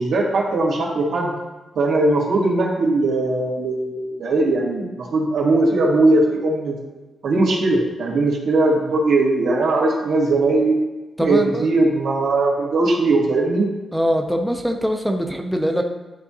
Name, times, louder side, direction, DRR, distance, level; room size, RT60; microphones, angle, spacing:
voice 1, 0.0-1.3 1.8-6.8 7.2-10.8 11.2-13.7, right 2 dB, 75° right, -3 dB, 1.8 m, -19 dB
voice 2, 11.2-11.6 13.9-15.8, equal, ahead, 2 dB, 0.5 m, -22 dB
10.5 x 3.6 x 2.8 m, 1.2 s
wide cardioid pair, 130°, 0 cm